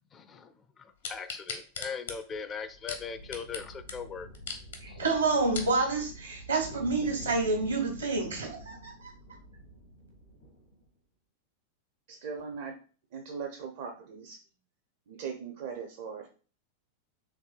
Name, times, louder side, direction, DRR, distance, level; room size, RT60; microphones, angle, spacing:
voice 1, 0.1-4.3 4.9-5.0, left 6 dB, 25° left, 10 dB, 0.4 m, -40 dB
sound 1, 1.0-3.6 3.9-4.0 4.3-4.8 5.3-5.7 6.4-6.5, left 5 dB, 65° left, 0.8 m, -38 dB
sound 2, 2.5-10.9, equal, 80° left, 1.4 m, -48 dB
voice 2, 4.8-9.1, right 3 dB, 75° right, 3 dB, 1.3 m, -28 dB
voice 3, 12.1-12.8 13.1-14.4 15.1-16.3, right 6 dB, 50° right, 2 dB, 0.6 m, -39 dB
4.8 x 3.2 x 2.3 m, 0.37 s
figure-of-eight pair, 90°, 0 cm